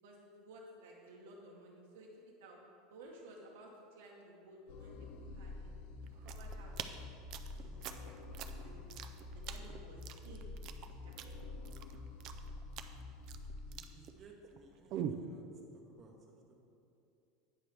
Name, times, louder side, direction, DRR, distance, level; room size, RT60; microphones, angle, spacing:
voice 1, 0.0-2.1 2.4-2.6 2.9-5.8 6.2-6.9 7.5-8.8 9.3-10.5 10.8-11.3, right 1 dB, 90° right, -1 dB, 0.9 m, -56 dB
sound 1, 4.7-13.8, left 3 dB, 60° left, 0.4 m, -48 dB
sound 2, 6.0-14.6 14.9-15.3, right 9 dB, 45° right, 0.4 m, -44 dB
voice 2, 13.7-15.4 16.0-16.1, right 3 dB, 30° right, 0 dB, 1.0 m, -59 dB
9.1 x 5.7 x 3.3 m, 2.6 s
supercardioid pair, 160°, 0 cm